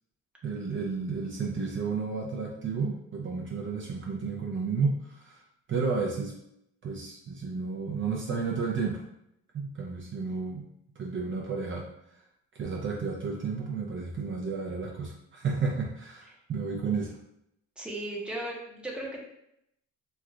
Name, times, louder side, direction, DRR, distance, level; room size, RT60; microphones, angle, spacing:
voice 1, 0.4-5.4 5.7-6.3 6.8-9.0 9.5-10.6 11.0-11.9 12.5-17.2, right 4 dB, 40° right, -2 dB, 0.6 m, -32 dB
voice 2, 17.8-19.3, right 1 dB, 5° right, -3 dB, 0.8 m, -36 dB
3.2 x 2.4 x 2.3 m, 0.77 s
cardioid pair, 90°, 30 cm